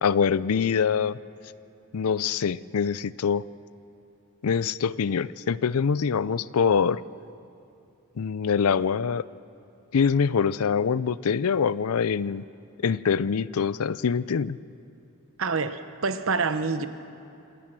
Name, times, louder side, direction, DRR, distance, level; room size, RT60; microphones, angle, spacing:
voice 1, 0.0-1.2 1.9-3.4 4.4-7.0 8.2-9.2 9.9-12.4 12.8-14.6, left 6 dB, 80° left, 18 dB, 0.5 m, -24 dB
voice 2, 15.4-16.9, right 4 dB, 65° right, 11 dB, 0.9 m, -27 dB
27.0 x 17.5 x 6.2 m, 2.8 s
head